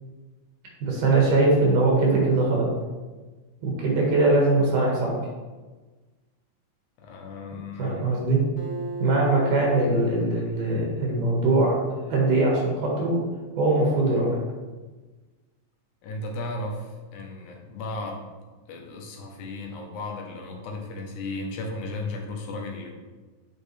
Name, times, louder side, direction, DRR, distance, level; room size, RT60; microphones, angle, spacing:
voice 1, 0.8-2.7 3.6-5.2 7.8-8.4 9.0-11.8 12.1-13.1 13.6-14.3, right 2 dB, 85° right, -2 dB, 3.2 m, -21 dB
voice 2, 7.0-8.1 16.0-18.3 18.7-22.9, left 2 dB, 75° left, 1 dB, 2.4 m, -35 dB
Acoustic guitar, 8.6-12.2, right 3 dB, 60° left, 1.0 m, -38 dB
7.8 x 5.3 x 3.3 m, 1.3 s
omnidirectional pair, 3.5 m